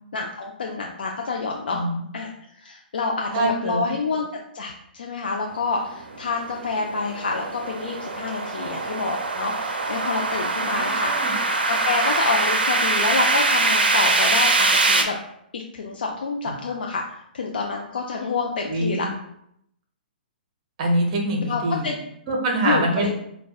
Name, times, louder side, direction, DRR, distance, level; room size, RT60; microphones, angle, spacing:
voice 1, 0.1-1.8 2.1-2.3 2.6-4.3 4.5-11.1 11.6-15.2 15.5-19.1 21.4-22.0 22.6-23.1, left 4 dB, 70° left, 0 dB, 0.4 m, -28 dB
voice 2, 3.3-3.8 10.8-11.3 18.7-19.1 20.8-21.9 22.3-23.1, right 1 dB, 45° right, 1 dB, 0.8 m, -24 dB
sound 1, 6.0-15.0, right 3 dB, 80° right, 0.5 m, -23 dB
5.3 x 2.2 x 2.3 m, 0.73 s
figure-of-eight pair, 125°, 5 cm